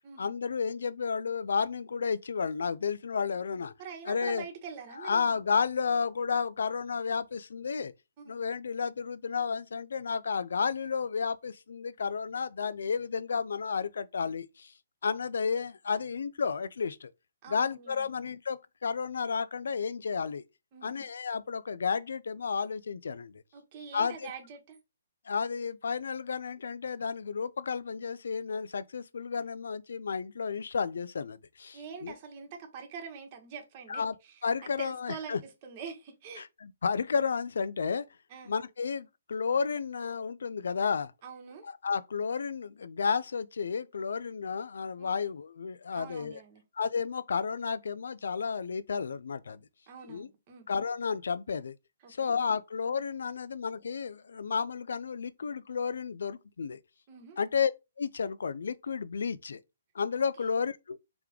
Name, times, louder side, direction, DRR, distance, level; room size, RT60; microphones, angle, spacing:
voice 1, 0.2-3.7 4.1-4.4 5.0-7.9 8.3-14.7 15.0-17.1 17.5-20.4 20.8-23.4 23.9-24.3 25.3-32.1 33.9-34.1 34.4-35.4 36.4-38.1 38.4-41.1 41.8-46.4 46.8-49.6 50.1-50.3 50.7-51.8 52.1-56.8 57.4-57.7 58.0-59.6 59.9-61.0, left 5 dB, 75° left, 0.4 m, -32 dB
voice 2, 3.8-5.4 8.2-8.3 17.4-18.1 20.7-21.1 23.5-24.8 31.7-34.4 34.8-36.5 38.3-38.5 41.2-41.7 45.0-45.2 45.9-46.6 49.9-50.7 52.0-52.3 57.1-57.4 60.4-60.5, right 6 dB, 35° right, 1.2 m, -45 dB
3.3 x 3.0 x 3.6 m
hypercardioid pair, 145°, 0 cm